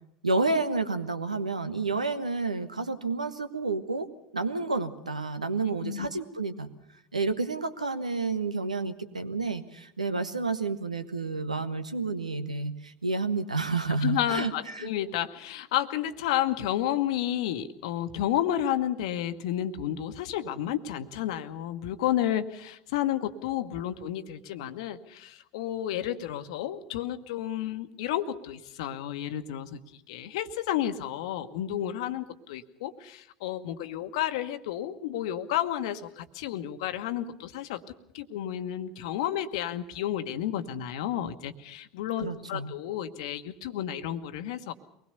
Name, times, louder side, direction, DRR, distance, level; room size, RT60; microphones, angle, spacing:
voice 1, 0.2-4.1 4.3-6.7 7.1-14.9 42.2-42.7, right 3 dB, 85° right, 12 dB, 1.2 m, -30 dB
voice 2, 14.0-37.8 38.1-44.7, left 11 dB, 60° left, 11 dB, 1.2 m, -31 dB
24.0 x 20.0 x 6.8 m, 0.80 s
figure-of-eight pair, 70°, 4 cm